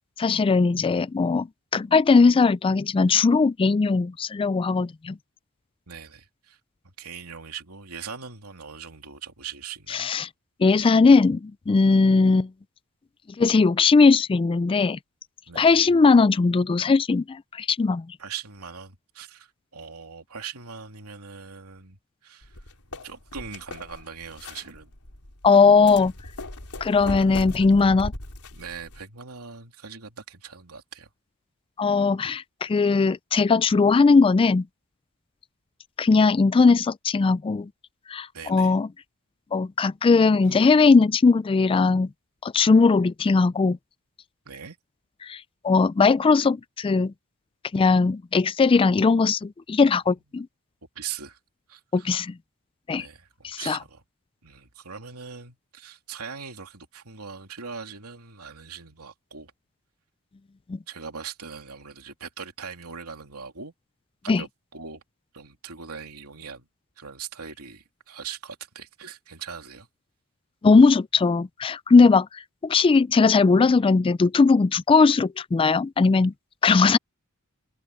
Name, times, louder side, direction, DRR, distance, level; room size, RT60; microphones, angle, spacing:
voice 1, 0.2-1.5 1.7-5.2 9.9-10.3 10.6-12.5 13.4-15.0 15.6-18.1 25.4-26.1 26.8-28.1 31.8-34.7 36.0-37.7 38.1-38.9 39.5-42.1 42.4-43.8 45.2-47.1 47.7-50.5 51.9-52.3 52.9-53.1 53.4-53.8 60.7-60.8 64.3-64.4 70.6-76.3 76.6-77.0, left 4 dB, 25° left, 0.3 m, -19 dB
voice 2, 5.9-6.6 7.0-10.1 15.5-15.8 18.2-22.6 23.0-24.9 28.5-31.1 38.3-38.8 44.4-44.8 50.9-51.4 51.7-52.1 53.0-54.0 54.4-59.5 60.9-63.7 64.2-65.0 65.3-66.7 67.0-69.9, right 6 dB, 80° right, 3.1 m, -40 dB
sound 1, 22.4-29.0, left 2 dB, 90° left, 3.9 m, -38 dB
head